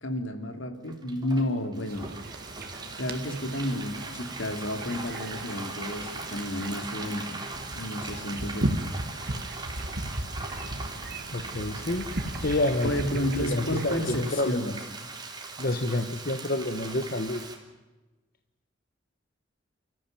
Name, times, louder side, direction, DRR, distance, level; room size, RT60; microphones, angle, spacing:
voice 1, 0.0-2.1 3.0-7.4 7.7-8.7 12.8-14.7, left 1 dB, 80° left, 7 dB, 2.9 m, -31 dB
Frying (food), 0.9-17.6, right 3 dB, 20° right, 3.4 m, -40 dB
sound 1, 1.9-14.3, right 1 dB, 55° right, 2.0 m, -37 dB
voice 2, 11.3-12.1 12.4-14.7 15.6-17.4, left 2 dB, 50° left, 7 dB, 1.3 m, -29 dB
29.0 x 14.5 x 9.3 m, 1.1 s
head